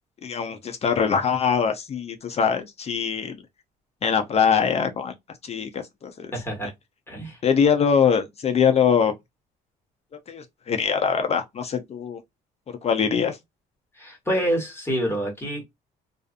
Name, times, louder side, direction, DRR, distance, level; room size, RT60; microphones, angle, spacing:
voice 1, 0.2-3.4 4.0-5.1 5.4-6.3 7.4-9.1 10.3-12.2 12.8-13.4, left 7 dB, 40° left, 0.6 m, -22 dB
voice 2, 6.3-6.7 7.1-7.4 13.9-15.6, equal, 15° left, 1.3 m, -27 dB
2.5 x 2.4 x 2.4 m
cardioid pair, 110°, 17 cm